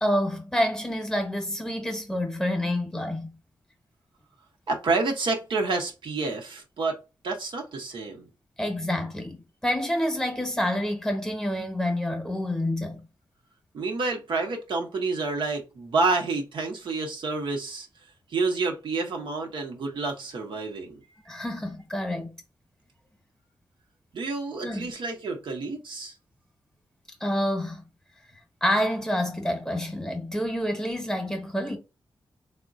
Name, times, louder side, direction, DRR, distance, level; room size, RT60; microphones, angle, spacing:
voice 1, 0.0-3.3 8.6-13.0 21.3-22.4 24.6-24.9 27.2-27.8 28.6-31.8, left 1 dB, 5° left, 0.9 m, -28 dB
voice 2, 4.7-8.3 13.7-17.9 18.3-21.0 24.1-26.1, right 3 dB, 85° right, 0.8 m, -29 dB
3.6 x 2.1 x 2.4 m
wide cardioid pair, 85°, 8 cm